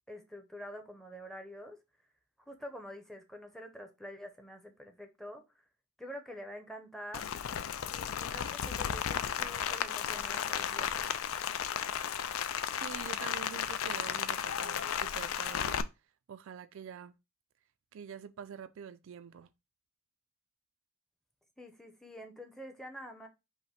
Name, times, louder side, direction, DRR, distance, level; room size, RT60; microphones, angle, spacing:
voice 1, 0.1-1.8 2.5-5.6 6.0-7.3 7.9-11.1 21.6-23.3, equal, ahead, 0.7 m, -47 dB
Rain, 7.1-15.8, left 8 dB, 70° left, 0.4 m, -34 dB
voice 2, 12.8-15.8 16.3-17.1 17.9-19.5, right 8 dB, 65° right, 0.4 m, -46 dB
5.6 x 2.1 x 4.1 m
head